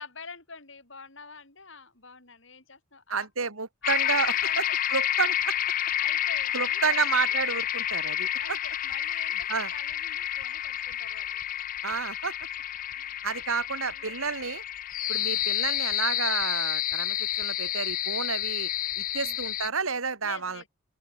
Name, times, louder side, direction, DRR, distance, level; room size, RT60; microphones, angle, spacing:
voice 1, 0.0-3.3 3.8-4.8 6.0-7.3 8.4-11.4 13.7-14.3 15.1-15.5 19.2-19.5 20.2-20.7, left 5 dB, 60° left, 5.3 m, -45 dB
voice 2, 3.1-5.5 6.5-8.6 9.5-9.7 11.8-12.3 13.2-14.6 15.1-18.7 19.0-20.7, right 5 dB, 85° right, 2.3 m, -30 dB
sound 1, 3.8-19.7, left 12 dB, 40° left, 0.4 m, -29 dB
open air
head